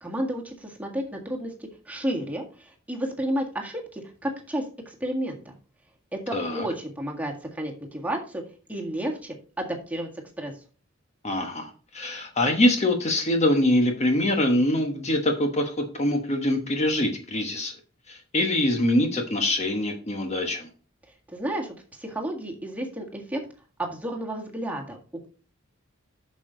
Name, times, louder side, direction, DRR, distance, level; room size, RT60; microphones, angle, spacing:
voice 1, 0.0-5.6 6.1-8.4 8.7-10.1 10.4-10.5 21.3-23.4 23.8-25.0, right 1 dB, 10° right, 0 dB, 1.7 m, -32 dB
voice 2, 6.3-6.7 11.2-17.7 18.1-20.7, left 1 dB, 35° left, 4 dB, 1.2 m, -24 dB
8.3 x 6.5 x 3.9 m, 0.38 s
head